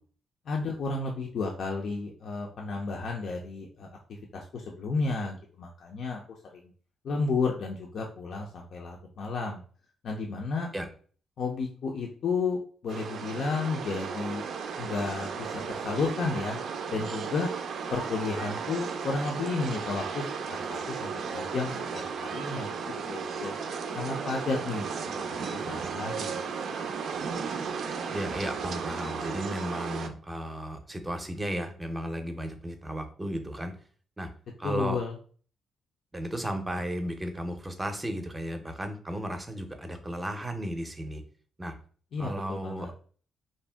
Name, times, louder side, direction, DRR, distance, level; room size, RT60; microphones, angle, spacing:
voice 1, 0.5-3.9 4.3-6.2 6.5-6.6 7.0-9.6 10.0-10.7 11.4-14.4 14.8-16.6 16.9-17.5 17.9-22.7 23.1-23.5 23.9-24.9 25.3-26.4 34.6-35.1 42.1-42.9, left 4 dB, 65° left, 0 dB, 0.5 m, -32 dB
sound 1, 12.9-30.1, right 6 dB, 70° right, 0.4 m, -35 dB
voice 2, 28.1-33.7 34.2-34.3 34.6-35.0 36.1-41.2 41.6-41.7 42.2-42.9, equal, 15° right, 6 dB, 0.6 m, -34 dB
2.6 x 2.1 x 3.3 m, 0.43 s
cardioid pair, 80°, 0 cm